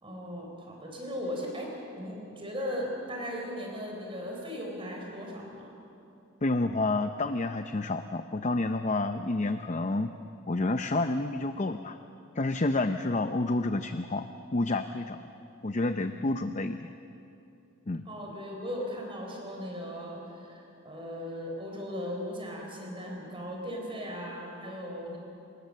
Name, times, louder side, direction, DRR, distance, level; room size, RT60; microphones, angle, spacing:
voice 1, 0.0-5.7 18.1-25.2, equal, 25° right, 0 dB, 4.0 m, -37 dB
voice 2, 6.4-10.1 10.5-12.0 12.4-14.3 14.5-15.2 15.6-16.9 17.9-18.1, left 2 dB, 35° left, 8 dB, 0.6 m, -29 dB
27.5 x 21.5 x 6.6 m, 2.8 s
head